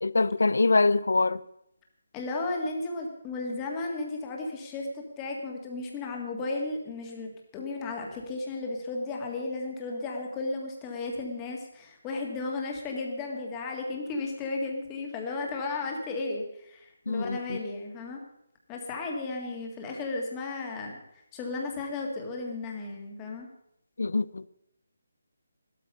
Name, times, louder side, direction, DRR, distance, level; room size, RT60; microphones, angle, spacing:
voice 1, 0.0-1.4 17.1-17.6 24.0-24.5, left 3 dB, 85° left, 0.6 m, -24 dB
voice 2, 2.1-18.2 18.7-21.0 21.3-23.5, left 3 dB, 10° left, 1.8 m, -34 dB
15.0 x 12.5 x 5.4 m
hypercardioid pair, 175°, 0 cm